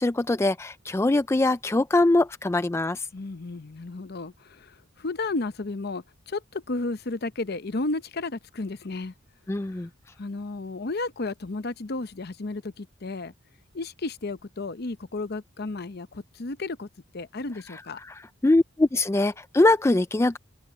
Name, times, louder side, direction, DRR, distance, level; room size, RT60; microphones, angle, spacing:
voice 1, 0.0-3.1 9.5-9.9 18.1-18.2 18.4-20.4, left 2 dB, 15° left, 0.3 m, -22 dB
voice 2, 3.1-9.1 10.2-13.3 13.7-16.9 17.1-18.0, left 3 dB, 50° left, 0.8 m, -33 dB
open air
head